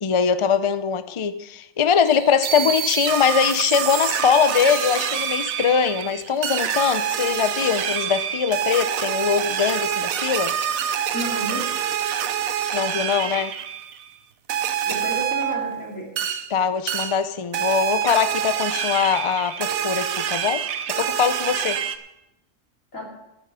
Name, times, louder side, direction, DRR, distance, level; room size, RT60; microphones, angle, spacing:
voice 1, 0.0-10.5 12.7-13.5 16.5-20.6 21.0-21.8, left 7 dB, 50° left, 12 dB, 0.3 m, -22 dB
sound 1, 2.1-14.1 14.5-16.5 16.9-17.3 17.5-22.0, right 9 dB, 85° right, 1.2 m, -26 dB
voice 2, 11.1-11.8 14.8-16.1 22.9-23.0, right 1 dB, 70° left, -2 dB, 3.6 m, -31 dB
9.9 x 9.6 x 6.8 m, 0.88 s
omnidirectional pair, 1.4 m